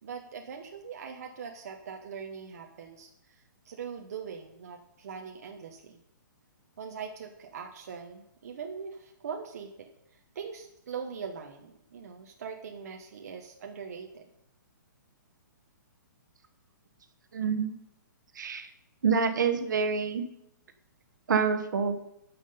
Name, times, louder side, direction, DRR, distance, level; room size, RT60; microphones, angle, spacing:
voice 1, 0.0-6.0 6.8-14.3, right 6 dB, 50° right, 2 dB, 1.0 m, -42 dB
voice 2, 17.3-17.8 18.4-18.7 19.0-20.2 21.3-22.0, right 5 dB, 65° right, 8 dB, 1.3 m, -27 dB
12.0 x 5.9 x 5.4 m, 0.81 s
hypercardioid pair, 170°, 11 cm